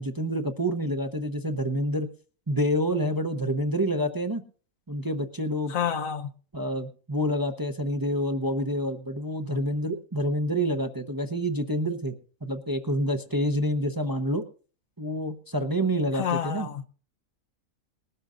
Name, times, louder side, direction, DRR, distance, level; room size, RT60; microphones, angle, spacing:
voice 1, 0.0-2.1 2.5-4.4 4.9-5.8 6.5-12.2 12.4-14.4 15.0-16.7, equal, 20° right, 0.7 m, -28 dB
voice 2, 5.7-6.3 9.5-9.6 16.1-16.8, left 8 dB, 75° left, 1.3 m, -29 dB
20.5 x 12.5 x 2.6 m
omnidirectional pair, 1.4 m